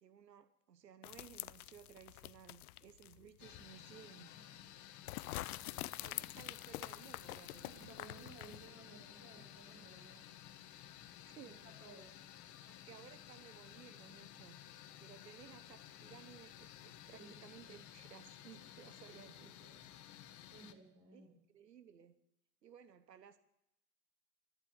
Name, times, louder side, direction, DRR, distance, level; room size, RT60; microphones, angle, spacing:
voice 1, 0.0-4.3 5.3-5.6 5.8-7.9 11.3-11.6 12.7-14.7 15.0-19.5 21.1-22.2 22.6-23.4, right 8 dB, 85° right, 12 dB, 1.2 m, -58 dB
sound 1, 1.0-3.3 3.7-3.8 5.1-8.7, left 17 dB, 65° left, 0.6 m, -46 dB
sound 2, 3.4-20.7, left 11 dB, 35° left, 1.4 m, -55 dB
voice 2, 7.6-10.2 11.5-12.1 17.1-17.3 19.0-19.7 20.5-21.4, right 4 dB, 30° right, 3 dB, 6.0 m, -58 dB
13.5 x 11.0 x 8.7 m, 0.82 s
hypercardioid pair, 100°, 48 cm